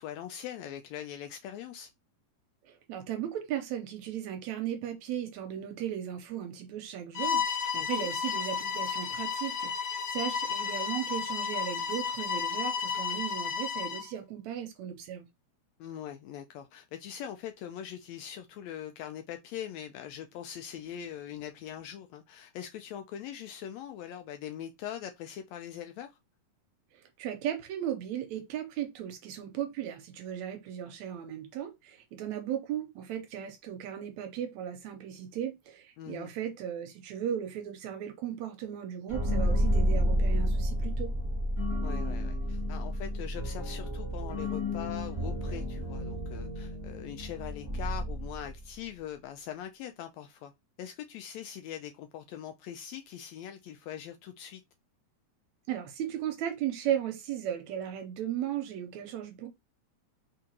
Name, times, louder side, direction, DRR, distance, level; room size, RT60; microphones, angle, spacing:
voice 1, 0.0-1.9 7.7-8.1 15.8-26.1 36.0-36.3 41.8-50.5 50.8-54.6, left 10 dB, 80° left, 1.6 m, -42 dB
voice 2, 2.6-15.3 26.9-41.1 55.7-59.5, right 10 dB, 75° right, 1.9 m, -36 dB
Bowed string instrument, 7.1-14.1, left 6 dB, 65° left, 1.6 m, -32 dB
sound 1, 39.1-48.8, equal, 20° left, 0.7 m, -31 dB
4.4 x 3.8 x 2.8 m
omnidirectional pair, 3.5 m